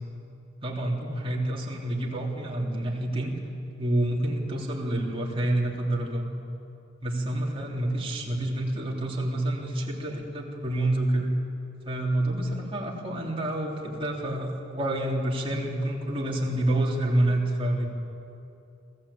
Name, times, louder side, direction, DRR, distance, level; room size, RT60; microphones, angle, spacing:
voice 1, 0.6-3.3 3.8-6.3 7.0-11.3 11.8-17.9, right 1 dB, 25° right, -2 dB, 3.2 m, -28 dB
26.5 x 15.0 x 8.5 m, 2.8 s
head